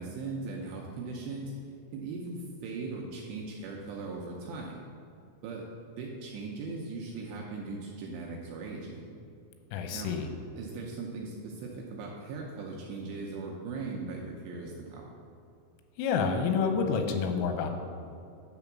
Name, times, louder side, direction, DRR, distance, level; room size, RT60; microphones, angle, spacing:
voice 1, 0.0-1.5 1.9-4.8 5.4-5.7 6.0-9.2 9.9-10.2 10.6-15.0, right 3 dB, 80° right, -2 dB, 2.6 m, -39 dB
voice 2, 9.7-10.3 16.0-17.7, left 5 dB, 90° left, 5 dB, 3.2 m, -28 dB
10.0 x 3.5 x 7.1 m, 2.5 s
omnidirectional pair, 5.7 m